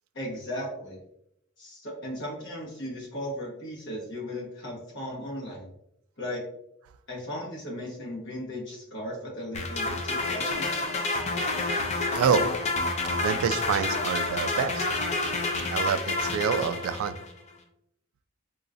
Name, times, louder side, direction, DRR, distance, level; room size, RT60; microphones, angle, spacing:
voice 1, 0.1-1.0 1.6-5.7 6.2-6.4 7.1-10.8, left 1 dB, 60° left, -3 dB, 1.1 m, -36 dB
sound 1, 9.5-17.3, left 3 dB, 35° left, 0.4 m, -29 dB
voice 2, 12.1-12.5 13.2-14.9 15.7-17.2, right 7 dB, 90° right, 14 dB, 0.3 m, -27 dB
3.8 x 2.4 x 2.4 m, 0.76 s
head